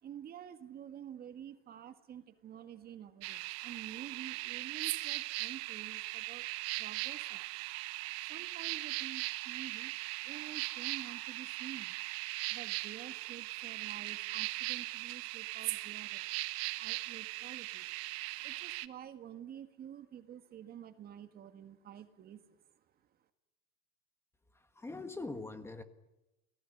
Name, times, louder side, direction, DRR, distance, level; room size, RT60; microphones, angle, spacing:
voice 1, 0.0-6.5 6.8-7.5 8.3-9.9 10.2-12.0 12.5-16.3 16.8-17.9 18.4-22.4, right 9 dB, 30° right, 9 dB, 1.6 m, -49 dB
sound 1, 3.2-18.9, right 20 dB, 55° right, 1.2 m, -39 dB
voice 2, 24.5-25.8, left 3 dB, 10° left, 9 dB, 1.6 m, -43 dB
29.5 x 18.5 x 9.7 m, 0.96 s
supercardioid pair, 145°, 29 cm